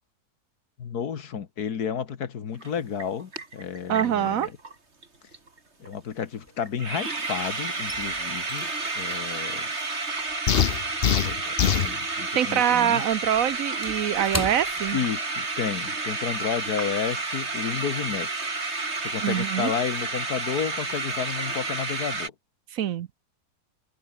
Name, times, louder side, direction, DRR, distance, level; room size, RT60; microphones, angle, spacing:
voice 1, 0.8-4.5 5.8-8.7 9.0-9.7 11.2-13.0 14.9-18.3 19.0-22.3, left 7 dB, 75° left, 2.0 m, -31 dB
sound 1, 2.6-2.7 3.0-4.7 5.0-5.1 5.3-5.6 5.8-5.9 6.3-6.4 6.6-22.3, right 3 dB, 45° right, 3.4 m, -31 dB
voice 2, 3.9-4.5 12.3-15.0 19.2-19.7 22.7-23.1, right 10 dB, 65° right, 1.1 m, -24 dB
sound 2, 4.3-4.9 5.1-7.1 7.4-12.1 12.4-15.7 16.0-16.2 16.6-16.9, left 1 dB, 10° left, 1.6 m, -40 dB
sound 3, 10.5-11.9, left 9 dB, 50° left, 0.7 m, -22 dB
omnidirectional pair, 1.7 m